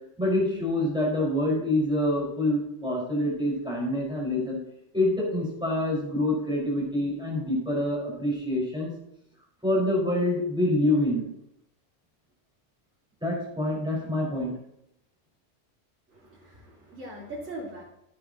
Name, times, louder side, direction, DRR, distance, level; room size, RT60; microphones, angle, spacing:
voice 1, 0.2-4.6 4.9-8.9 9.6-11.2 13.2-14.5, left 1 dB, 5° right, -5 dB, 5.3 m, -26 dB
voice 2, 16.1-17.8, right 1 dB, 80° right, -7 dB, 2.9 m, -40 dB
15.5 x 10.0 x 3.1 m, 0.79 s
omnidirectional pair, 1.3 m